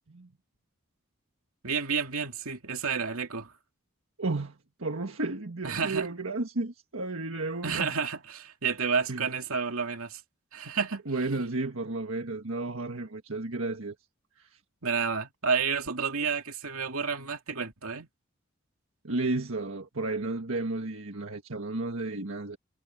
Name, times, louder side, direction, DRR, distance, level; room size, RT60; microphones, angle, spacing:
voice 1, 1.6-3.5 5.6-6.1 7.6-10.2 10.5-11.0 14.8-18.1, right 5 dB, 90° right, 2.4 m, -30 dB
voice 2, 4.2-7.9 9.1-9.3 11.1-13.9 14.4-14.5 19.0-22.6, right 2 dB, 70° right, 1.6 m, -32 dB
head